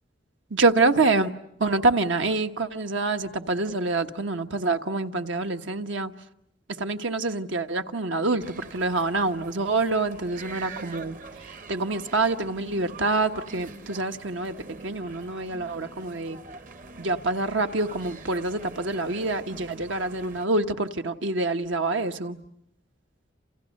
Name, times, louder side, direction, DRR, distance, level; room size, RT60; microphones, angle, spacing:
voice 1, 0.5-1.3 1.6-6.1 6.7-16.4 17.0-22.4, right 3 dB, 80° right, 7 dB, 1.3 m, -26 dB
sound 1, 8.4-20.5, right 3 dB, 45° right, 1.0 m, -45 dB
28.5 x 28.5 x 6.5 m, 0.74 s
head